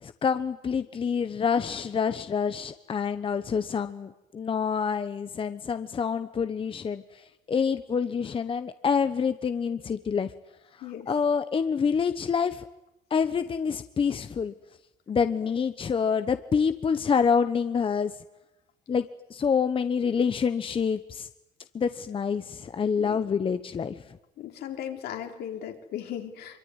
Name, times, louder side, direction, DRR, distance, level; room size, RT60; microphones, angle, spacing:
voice 1, 0.0-10.3 10.8-12.6 13.1-14.5 15.1-18.1 18.9-21.3 21.7-24.0, left 6 dB, 30° left, 10 dB, 1.0 m, -27 dB
voice 2, 24.4-26.6, left 10 dB, 75° left, 3 dB, 3.8 m, -37 dB
24.0 x 23.5 x 9.7 m, 0.92 s
cardioid pair, 110°, 17 cm